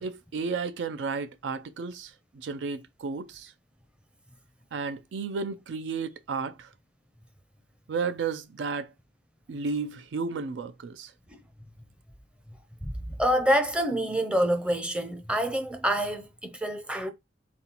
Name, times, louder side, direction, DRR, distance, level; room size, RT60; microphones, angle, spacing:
voice 1, 0.0-3.5 4.7-6.7 7.9-8.9 9.5-11.1, right 4 dB, 75° right, 0.4 m, -33 dB
voice 2, 12.8-17.1, equal, 5° right, 0.5 m, -27 dB
4.1 x 3.7 x 2.9 m
head